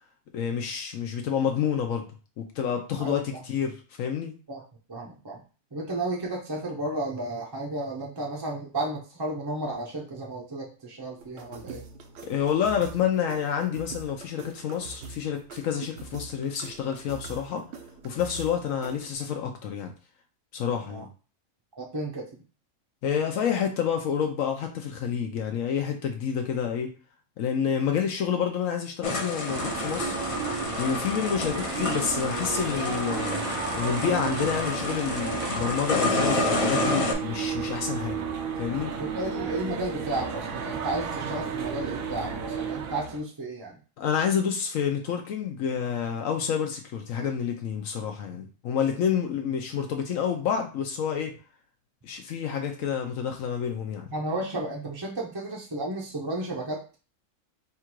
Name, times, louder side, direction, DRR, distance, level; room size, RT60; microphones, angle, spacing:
voice 1, 0.3-2.1 2.4-4.3 12.2-17.6 18.0-19.9 20.5-21.1 23.0-26.9 27.4-30.2 30.8-33.4 33.7-38.2 38.6-38.9 44.0-51.3 52.0-54.1, left 8 dB, 80° left, 4 dB, 1.0 m, -28 dB
voice 2, 3.0-3.4 4.5-4.6 4.9-5.4 5.7-11.8 20.9-21.0 21.8-22.3 39.0-43.8 54.1-56.8, right 2 dB, 30° right, -2 dB, 0.5 m, -33 dB
sound 1, 11.2-19.1, right 5 dB, 65° right, 0.8 m, -44 dB
sound 2, 29.0-37.1, left 2 dB, 40° left, 0.4 m, -29 dB
sound 3, 29.5-43.2, right 6 dB, 85° right, 1.1 m, -33 dB
3.6 x 2.4 x 4.5 m, 0.36 s
omnidirectional pair, 1.4 m